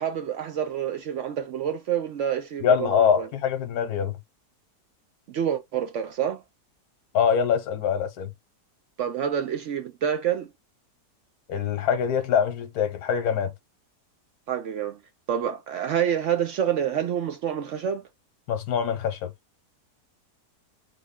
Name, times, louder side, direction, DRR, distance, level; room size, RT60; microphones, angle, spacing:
voice 1, 0.0-3.3 5.3-6.4 9.0-10.5 14.5-15.0 15.3-18.0, right 9 dB, 65° right, 0.7 m, -27 dB
voice 2, 2.6-4.1 7.1-8.3 11.5-13.5 18.5-19.3, left 7 dB, 70° left, 1.3 m, -24 dB
3.6 x 2.1 x 3.6 m
omnidirectional pair, 1.7 m